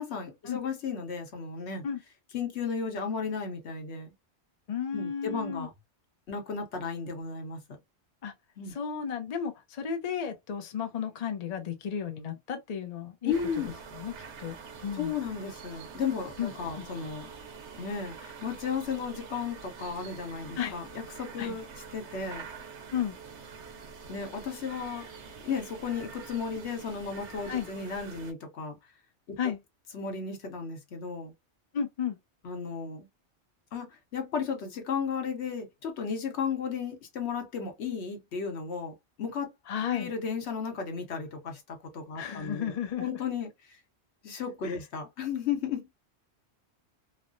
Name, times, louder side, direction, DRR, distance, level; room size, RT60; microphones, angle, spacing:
voice 1, 0.0-1.8 2.3-4.1 4.9-5.7 6.3-7.6 8.6-8.7 13.2-13.8 14.9-17.3 17.8-20.9 21.2-21.7 21.9-22.5 24.1-25.1 25.4-28.8 29.3-29.4 29.9-31.3 32.4-33.1 33.7-39.5 39.9-42.7 43.0-43.8 44.2-45.9, left 6 dB, 75° left, 1.1 m, -34 dB
voice 2, 4.7-5.7 8.2-8.3 8.7-13.3 13.9-14.1 14.4-15.1 16.4-16.9 20.6-20.8 21.4-21.6 22.9-23.2 27.5-27.7 29.4-29.6 31.7-32.2 39.7-40.1 42.1-43.2 44.6-44.8, left 8 dB, 50° left, 0.5 m, -33 dB
sound 1, 13.3-28.3, right 5 dB, 80° right, 1.0 m, -46 dB
3.0 x 2.1 x 2.4 m
omnidirectional pair, 1.2 m